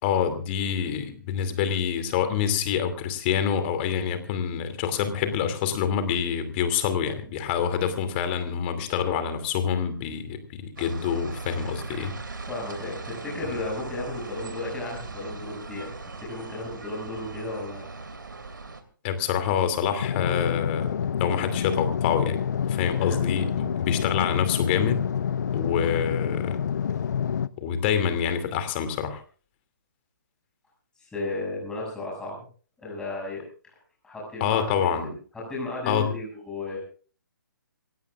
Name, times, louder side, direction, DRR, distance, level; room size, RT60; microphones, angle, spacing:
voice 1, 0.0-12.1 19.0-22.4 22.7-25.0 25.5-26.6 27.6-29.2 34.4-35.1 35.9-36.1, left 8 dB, 30° left, 9 dB, 2.7 m, -26 dB
sound 1, 10.8-18.8, right 3 dB, 75° right, 2.6 m, -39 dB
voice 2, 12.5-15.9 16.2-17.9 23.0-23.2 31.0-32.4 32.8-33.4 34.0-34.7 35.3-36.8, left 2 dB, 5° left, -4 dB, 6.7 m, -34 dB
sound 2, 20.0-27.5, left 8 dB, 60° left, 0.6 m, -27 dB
26.5 x 17.0 x 2.5 m, 0.39 s
figure-of-eight pair, 135°, 11 cm